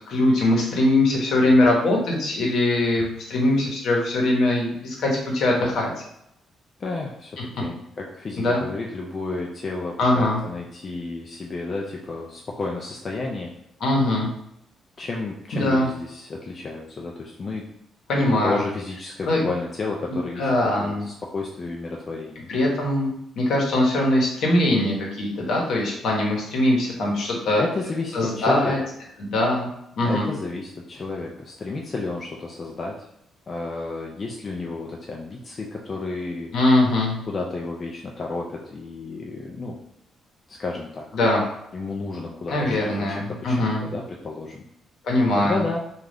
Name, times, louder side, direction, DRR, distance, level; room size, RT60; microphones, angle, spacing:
voice 1, 0.0-5.9 8.4-8.6 10.0-10.4 13.8-14.3 15.5-15.9 18.1-18.6 19.3-19.4 20.1-21.0 22.5-27.6 28.1-28.8 29.2-29.7 30.0-30.3 36.5-37.1 41.1-41.4 42.5-43.9 45.0-45.6, left 1 dB, 70° left, -1 dB, 0.9 m, -21 dB
voice 2, 6.8-13.5 15.0-17.7 18.4-22.5 27.6-28.7 30.0-33.1 33.5-36.5 37.3-39.8 40.5-41.1 41.7-44.6 45.4-45.8, left 3 dB, 40° left, -1 dB, 0.4 m, -31 dB
2.5 x 2.3 x 3.3 m, 0.78 s
cardioid pair, 90°, 0 cm